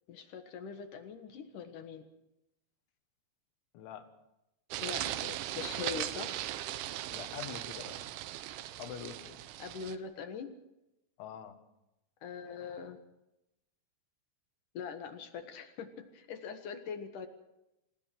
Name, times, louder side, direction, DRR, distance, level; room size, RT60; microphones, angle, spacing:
voice 1, 0.1-2.0 4.8-6.4 9.6-10.5 12.2-13.0 14.7-17.3, left 6 dB, 60° left, 7 dB, 2.4 m, -42 dB
voice 2, 3.7-4.1 7.1-8.1 8.8-9.4 11.2-11.6, left 9 dB, 85° left, 8 dB, 4.0 m, -45 dB
sound 1, 4.7-10.0, right 13 dB, 85° right, 3.3 m, -38 dB
26.0 x 17.0 x 6.1 m, 0.90 s
omnidirectional pair, 5.3 m